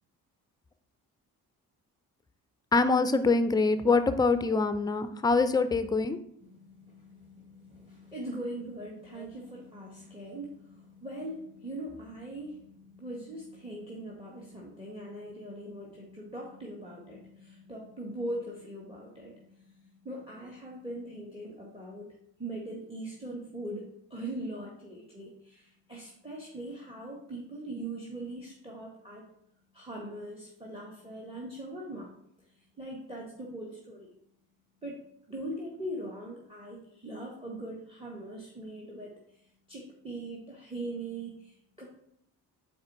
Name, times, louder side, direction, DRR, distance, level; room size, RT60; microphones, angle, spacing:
voice 1, 2.7-6.2, left 3 dB, 10° left, 11 dB, 0.5 m, -24 dB
voice 2, 6.4-19.4 20.0-22.1 22.4-29.2 29.7-32.1 32.8-34.1 34.8-35.0 35.3-39.1 39.7-41.9, right 1 dB, 10° right, -3 dB, 1.6 m, -41 dB
8.6 x 3.5 x 4.2 m, 0.74 s
figure-of-eight pair, 40°, 48 cm